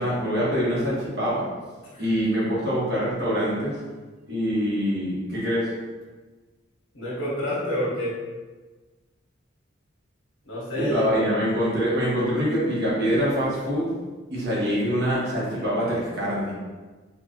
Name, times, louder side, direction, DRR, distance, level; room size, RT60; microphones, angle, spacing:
voice 1, 0.0-1.5 2.0-3.8 4.3-5.7 10.7-13.9 14.3-16.5, equal, 55° right, -7 dB, 1.2 m, -24 dB
voice 2, 6.9-8.2 10.4-11.4, equal, 75° left, -7 dB, 1.5 m, -28 dB
4.3 x 2.5 x 2.8 m, 1.3 s
head